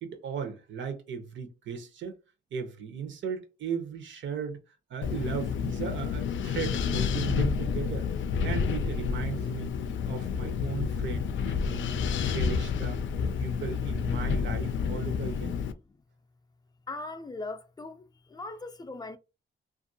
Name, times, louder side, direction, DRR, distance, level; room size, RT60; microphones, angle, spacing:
voice 1, 0.0-2.2 2.5-8.1 8.4-9.8 10.1-13.0 13.4-15.6, right 6 dB, 85° right, 0.7 m, -36 dB
Wind, 5.0-15.7, left 6 dB, 85° left, 0.4 m, -29 dB
voice 2, 16.9-19.2, left 2 dB, 20° left, 0.3 m, -40 dB
2.7 x 2.5 x 2.6 m
cardioid pair, 105°, 19 cm